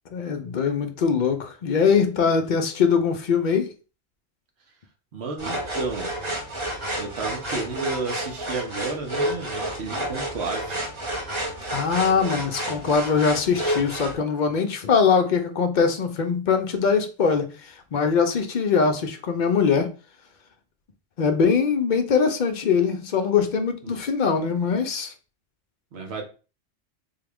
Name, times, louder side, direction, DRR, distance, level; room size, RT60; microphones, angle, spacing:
voice 1, 0.1-3.7 11.7-17.5 17.9-19.9 21.2-25.1, left 6 dB, 55° left, 0.6 m, -22 dB
voice 2, 5.1-6.1 7.0-10.9 23.8-24.0 25.9-26.2, right 3 dB, 75° right, 1.1 m, -32 dB
sound 1, 5.4-14.2, right 1 dB, 30° right, 0.8 m, -30 dB
3.6 x 2.4 x 3.4 m
omnidirectional pair, 1.1 m